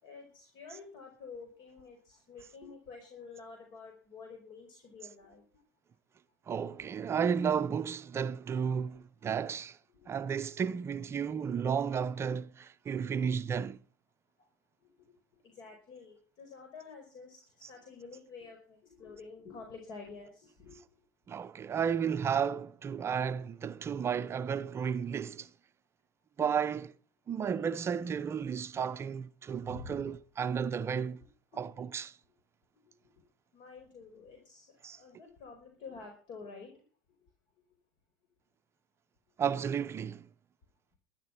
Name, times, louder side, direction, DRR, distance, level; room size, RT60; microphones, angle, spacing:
voice 1, 0.0-5.6 8.8-8.9 10.0-10.4 13.5-13.6 14.4-14.5 15.0-15.1 15.4-20.8 29.7-30.0 31.5-31.6 33.5-36.8, left 4 dB, 50° left, 4.9 m, -49 dB
voice 2, 6.5-9.8 10.1-13.8 21.3-25.5 26.4-26.9 27.3-31.2 31.6-32.2 34.8-35.0 39.4-40.3, right 7 dB, 25° right, 0.7 m, -33 dB
13.0 x 12.0 x 5.9 m
supercardioid pair, 110°, 10 cm